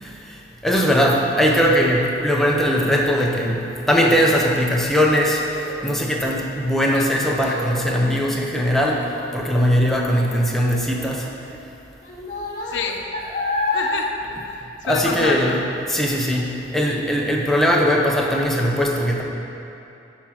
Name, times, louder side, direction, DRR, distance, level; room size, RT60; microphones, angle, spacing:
voice 1, 0.0-11.3 14.8-15.6 15.9-19.2, equal, ahead, -1 dB, 0.6 m, -20 dB
Child speech kid speaking, 2.9-15.3 15.7-16.1 16.6-16.7, left 2 dB, 50° left, 1.4 m, -32 dB
voice 2, 12.7-13.0 13.7-14.1 14.5-15.6, left 4 dB, 70° left, 2 dB, 0.5 m, -28 dB
5.6 x 4.5 x 6.1 m, 2.8 s
head